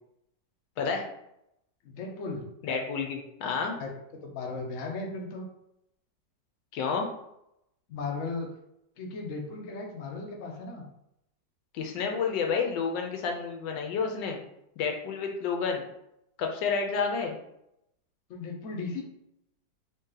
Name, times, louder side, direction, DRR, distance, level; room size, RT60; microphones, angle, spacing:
voice 1, 1.8-2.5 3.8-3.9 4.2-5.5 7.9-8.5 9.0-10.9 18.3-19.0, left 3 dB, 60° left, 1 dB, 0.9 m, -36 dB
voice 2, 2.6-3.7 6.7-7.1 11.7-14.4 14.8-15.9 16.4-17.3, left 5 dB, 85° left, 2 dB, 1.3 m, -30 dB
3.2 x 2.8 x 3.7 m, 0.81 s
omnidirectional pair, 1.9 m